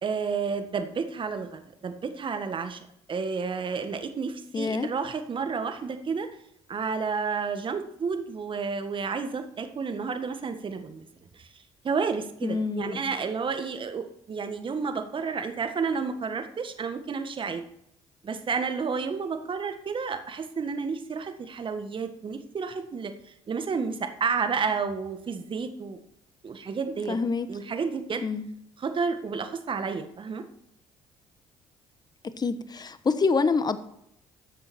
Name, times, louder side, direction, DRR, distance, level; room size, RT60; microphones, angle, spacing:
voice 1, 0.0-2.8 3.1-6.3 6.7-11.0 11.3-11.5 11.8-17.6 18.2-26.0 26.4-27.2 27.5-28.2 28.8-30.4, right 5 dB, 45° right, 8 dB, 1.6 m, -31 dB
voice 2, 4.5-4.9 12.4-13.1 27.1-27.5 28.2-28.5 32.4-33.8, left 4 dB, 35° left, 12 dB, 1.2 m, -26 dB
13.5 x 7.6 x 4.4 m, 0.76 s
supercardioid pair, 65°, 12 cm